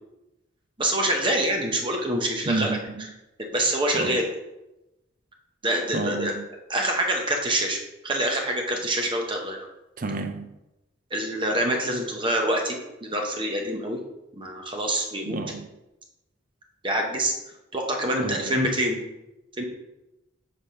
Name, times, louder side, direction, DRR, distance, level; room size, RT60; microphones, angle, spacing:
voice 1, 0.8-2.8 3.5-4.3 5.6-6.3 6.7-7.8 8.0-9.7 11.1-14.0 14.4-15.4 16.8-17.3 17.7-19.0 19.6-19.7, right 1 dB, 25° right, 0.9 m, -25 dB
voice 2, 2.5-3.1 3.9-4.2 5.9-6.4 10.0-10.5 15.3-15.7 18.2-18.5, right 3 dB, 45° right, 0.5 m, -30 dB
5.8 x 3.4 x 5.4 m
head